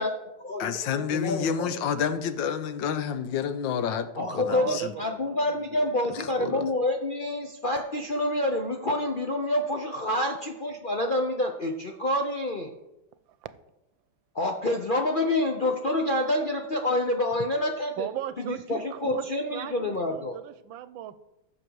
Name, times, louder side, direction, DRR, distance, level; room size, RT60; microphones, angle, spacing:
voice 1, 0.0-1.7 4.1-12.7 14.3-18.1 18.4-20.4, left 1 dB, 55° left, 3 dB, 0.5 m, -28 dB
voice 2, 0.6-4.9 6.1-6.7, left 7 dB, 80° left, 11 dB, 1.4 m, -29 dB
voice 3, 4.5-6.1 13.4-13.5 18.0-21.2, right 11 dB, 90° right, 14 dB, 1.4 m, -37 dB
15.0 x 6.4 x 4.7 m, 0.93 s
omnidirectional pair, 2.1 m